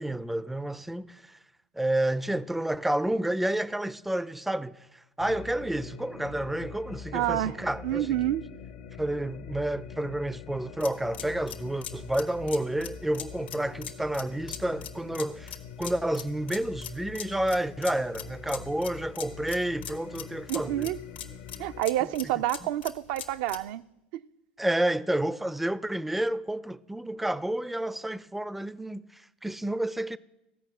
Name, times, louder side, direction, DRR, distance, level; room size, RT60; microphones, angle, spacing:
voice 1, 0.0-1.4 1.7-8.3 9.0-20.9 24.6-30.2, right 1 dB, 5° right, 0.4 m, -30 dB
sound 1, 5.2-21.8, left 6 dB, 65° left, 0.7 m, -44 dB
voice 2, 7.1-7.5 7.8-8.4 20.5-21.0 21.6-23.8, right 13 dB, 65° right, 0.4 m, -28 dB
sound 2, 10.8-23.7, left 9 dB, 90° left, 1.4 m, -42 dB
15.0 x 5.9 x 7.9 m
hypercardioid pair, 80°, 5 cm